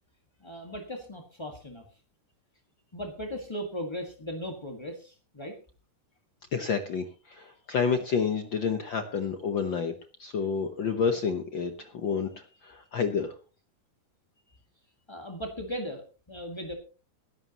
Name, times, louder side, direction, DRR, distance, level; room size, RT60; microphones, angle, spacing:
voice 1, 0.4-1.8 2.9-5.6 15.1-16.7, equal, 25° left, 3 dB, 0.6 m, -37 dB
voice 2, 6.5-9.9 10.2-13.3, left 6 dB, 70° left, 7 dB, 1.1 m, -29 dB
20.5 x 11.0 x 2.9 m, 0.34 s
omnidirectional pair, 3.6 m